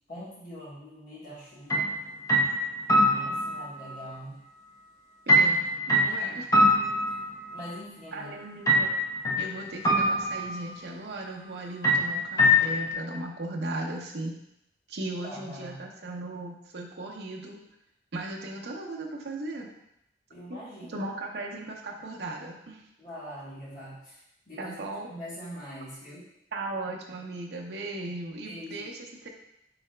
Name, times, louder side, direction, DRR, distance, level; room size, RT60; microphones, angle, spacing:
voice 1, 0.1-1.8 2.9-4.4 7.1-7.2 7.5-8.3 15.2-15.8 20.3-21.0 23.0-24.1 24.5-26.2 28.4-28.9, equal, 50° left, -9 dB, 1.4 m, -43 dB
sound 1, 1.7-1.9 2.3-3.7 5.3-7.6 8.7-9.5 9.8-10.7 11.8-12.9, equal, 20° left, 0.6 m, -23 dB
voice 2, 5.3-6.5 8.1-9.0 9.4-14.4 14.9-17.6 18.1-19.7 20.5-22.8 24.6-25.1 26.5-29.3, right 2 dB, 65° right, -1 dB, 0.6 m, -37 dB
4.7 x 4.0 x 2.2 m, 0.80 s
head